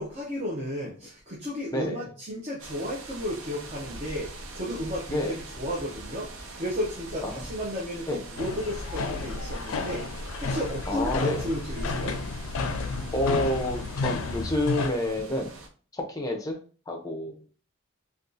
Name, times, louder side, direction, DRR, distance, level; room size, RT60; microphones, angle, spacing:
voice 1, 0.0-12.2, equal, 30° right, -3 dB, 0.6 m, -33 dB
voice 2, 1.7-2.1 5.1-5.4 7.2-7.5 8.1-8.2 10.9-11.5 13.1-15.5 15.9-16.6 16.9-17.4, left 1 dB, 15° left, 3 dB, 0.5 m, -29 dB
sound 1, 2.6-15.7, right 2 dB, 80° right, 0.6 m, -42 dB
sound 2, 8.4-14.9, left 3 dB, 80° left, 0.4 m, -31 dB
2.6 x 2.3 x 3.8 m, 0.40 s
head